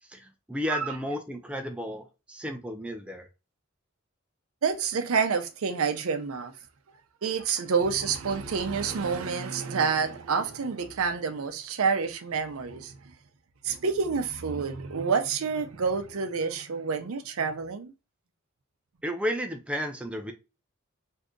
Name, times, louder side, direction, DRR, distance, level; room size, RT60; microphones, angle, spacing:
voice 1, 0.1-3.3 19.0-20.3, equal, 5° right, 0.3 m, -33 dB
voice 2, 4.6-6.5 7.2-13.0 13.6-17.9, right 5 dB, 80° right, 0.5 m, -28 dB
2.7 x 2.4 x 3.5 m
head